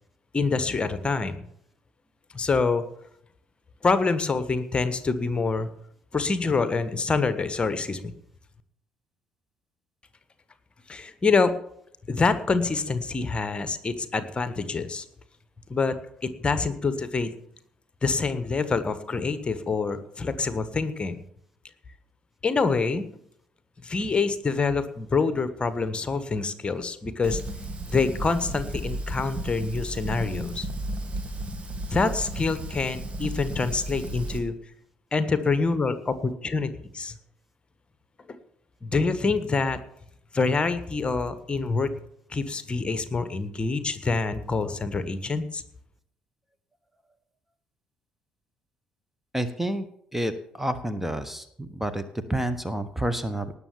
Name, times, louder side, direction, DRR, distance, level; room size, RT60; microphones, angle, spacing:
voice 1, 0.3-1.4 2.3-2.8 3.8-5.7 6.1-8.1 10.9-11.5 12.1-15.0 15.7-15.9 16.4-17.3 18.0-21.2 22.4-23.0 23.8-27.4 27.9-30.7 31.9-34.5 35.1-37.1 38.3-38.4 38.8-39.8 40.3-41.9 42.3-45.6, left 4 dB, 25° left, 12 dB, 1.4 m, -26 dB
Fire, 27.2-34.4, right 1 dB, 30° right, 2.7 m, -34 dB
voice 2, 49.3-49.8 50.1-53.5, right 1 dB, 5° right, 10 dB, 1.2 m, -29 dB
19.0 x 6.9 x 7.2 m, 0.70 s
figure-of-eight pair, 50°, 4 cm